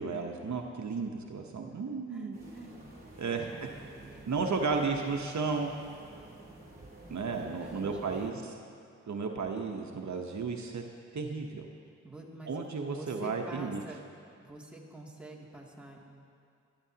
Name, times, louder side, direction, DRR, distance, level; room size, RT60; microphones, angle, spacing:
voice 1, 0.0-2.4 3.2-3.7 4.3-5.7 7.1-8.5 9.1-10.8 11.1-11.7 12.5-13.8, right 4 dB, 65° right, 2 dB, 1.0 m, -33 dB
voice 2, 1.6-2.8 3.2-4.3 4.7-5.1 7.0-8.5 12.0-12.6 12.9-14.0 14.4-16.1, right 1 dB, 5° right, -4 dB, 2.5 m, -48 dB
sound 1, 2.3-8.3, right 2 dB, 30° right, 3.2 m, -51 dB
19.0 x 12.5 x 2.9 m, 2.3 s
cardioid pair, 50°, 31 cm